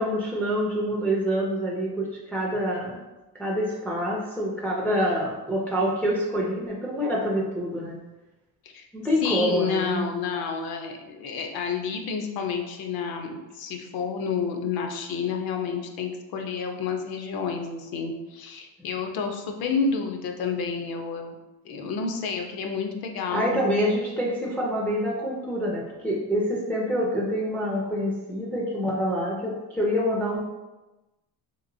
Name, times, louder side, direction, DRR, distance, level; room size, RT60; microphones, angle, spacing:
voice 1, 0.0-3.0 3.3-8.0 8.9-10.0 23.3-30.4, equal, 5° left, -3 dB, 0.3 m, -26 dB
voice 2, 9.2-21.3 21.6-23.6, left 5 dB, 65° left, 4 dB, 0.6 m, -30 dB
3.2 x 2.9 x 2.6 m, 1.1 s
cardioid pair, 140°, 40 cm